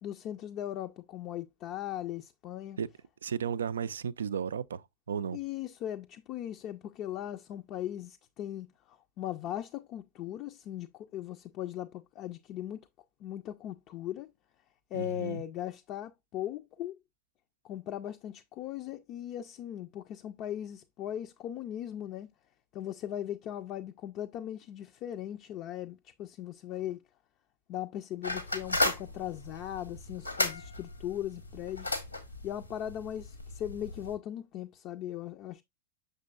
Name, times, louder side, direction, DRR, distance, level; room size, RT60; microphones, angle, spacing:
voice 1, 0.0-2.8 5.3-12.9 13.2-14.3 14.9-17.0 17.6-22.3 22.7-27.0 27.7-31.9 32.4-35.6, left 11 dB, 40° left, 0.5 m, -38 dB
voice 2, 3.2-5.4 14.9-15.4, right 7 dB, 65° right, 0.3 m, -34 dB
sound 1, 28.2-34.1, left 2 dB, 85° left, 1.4 m, -35 dB
6.6 x 6.6 x 2.3 m
figure-of-eight pair, 90°, 0 cm